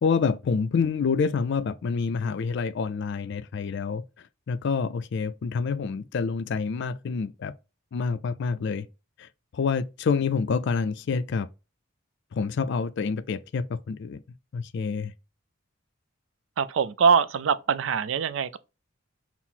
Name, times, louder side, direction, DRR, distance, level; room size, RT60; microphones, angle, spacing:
voice 1, 0.0-4.0 4.5-7.5 7.9-8.9 9.2-11.5 12.3-14.2 14.5-15.1, left 5 dB, 60° left, 0.4 m, -27 dB
voice 2, 16.6-18.6, right 6 dB, 65° right, 0.4 m, -23 dB
5.7 x 2.0 x 4.4 m
head